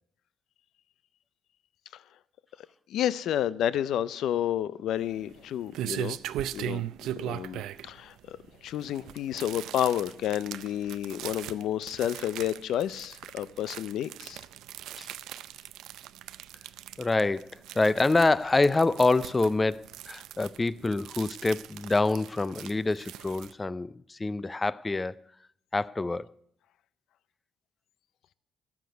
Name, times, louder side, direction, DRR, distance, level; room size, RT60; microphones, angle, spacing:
voice 1, 2.9-6.2 6.5-6.8 7.2-8.4 8.6-14.4, left 11 dB, 80° left, 0.5 m, -30 dB
sound 1, 5.0-23.5, right 12 dB, 85° right, 0.4 m, -40 dB
voice 2, 17.0-25.3 25.7-26.3, left 3 dB, 20° left, 0.5 m, -26 dB
13.5 x 6.0 x 9.3 m
cardioid pair, 90°, 0 cm